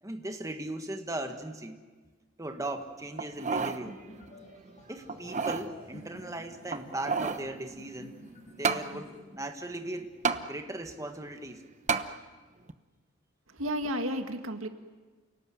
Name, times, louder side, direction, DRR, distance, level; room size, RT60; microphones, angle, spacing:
voice 1, 0.0-1.8 2.4-4.0 4.9-10.1 10.5-11.6, right 1 dB, 15° right, 6 dB, 1.5 m, -38 dB
sound 1, 3.2-3.8 4.3-4.4 5.1-5.7 6.7-7.5 8.6-8.9 10.2-10.4 11.9-12.1 12.7-12.8, right 5 dB, 35° right, 1.0 m, -30 dB
sound 2, 3.6-9.2, equal, 35° left, 7.0 m, -50 dB
voice 2, 13.5-14.7, equal, 85° right, 7 dB, 2.0 m, -32 dB
29.0 x 19.0 x 9.4 m, 1.3 s
head